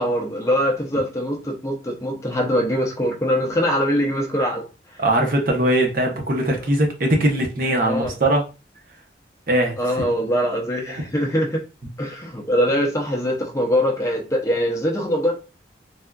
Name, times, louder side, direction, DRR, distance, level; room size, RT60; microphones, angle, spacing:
voice 1, 0.0-4.7 7.8-8.2 9.8-11.6 12.0-15.3, equal, 15° left, 0 dB, 0.5 m, -22 dB
voice 2, 5.0-8.4 9.5-9.8, right 1 dB, 50° right, 2 dB, 0.7 m, -20 dB
3.4 x 2.4 x 2.2 m, 0.31 s
head